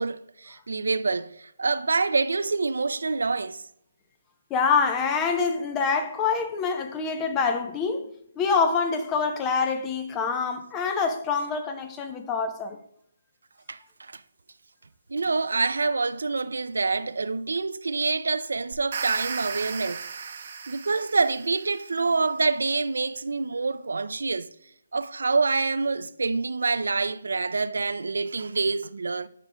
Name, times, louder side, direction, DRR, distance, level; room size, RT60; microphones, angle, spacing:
voice 1, 0.0-3.6 13.7-14.2 15.1-20.0 20.7-24.5 24.9-29.3, right 4 dB, 80° right, 0.4 m, -26 dB
voice 2, 4.5-8.0 8.4-12.8, left 5 dB, 20° left, 0.7 m, -25 dB
sound 1, 18.7-21.9, right 6 dB, 55° right, 0.8 m, -35 dB
10.5 x 5.0 x 2.2 m
hypercardioid pair, 150°, 0 cm